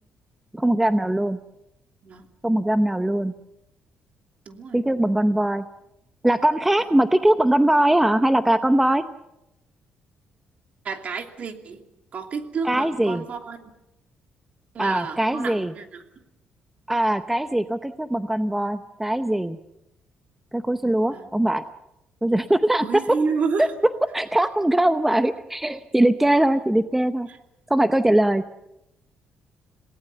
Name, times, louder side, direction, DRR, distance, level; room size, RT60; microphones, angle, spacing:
voice 1, 0.5-1.4 2.4-3.3 4.7-5.6 6.2-9.0 12.6-13.2 14.8-15.7 16.9-19.6 20.5-21.6 22.2-22.9 23.6-23.7 24.1-27.3 27.7-28.4, right 1 dB, 10° right, 10 dB, 0.8 m, -21 dB
voice 2, 4.5-5.0 10.8-11.8 12.1-13.7 14.7-16.0 21.1-21.3 22.8-23.7 27.3-27.4, right 5 dB, 50° right, 5 dB, 2.8 m, -30 dB
27.5 x 18.5 x 6.9 m, 0.89 s
cardioid pair, 110°, 3 cm